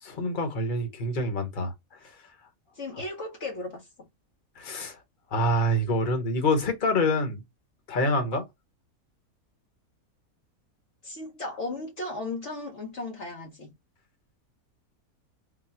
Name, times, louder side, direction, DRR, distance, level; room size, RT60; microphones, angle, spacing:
voice 1, 0.0-1.7 2.0-2.1 4.6-5.0 5.3-7.4 7.9-8.4, left 1 dB, 35° left, 1.2 m, -26 dB
voice 2, 2.7-3.9 11.0-13.7, left 2 dB, 55° left, 1.2 m, -35 dB
4.0 x 2.2 x 4.3 m
omnidirectional pair, 1.5 m